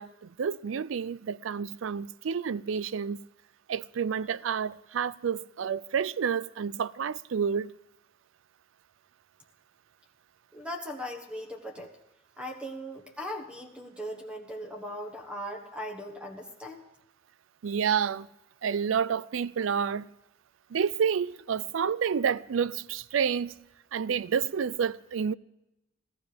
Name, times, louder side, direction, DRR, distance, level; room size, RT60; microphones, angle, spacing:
voice 1, 0.0-3.2 3.7-7.7 17.6-18.3 18.6-20.1 20.7-23.6 23.9-25.3, right 7 dB, 90° right, 0.4 m, -29 dB
voice 2, 10.5-11.9 12.4-16.8, equal, 5° right, 1.4 m, -39 dB
15.0 x 14.5 x 5.1 m
head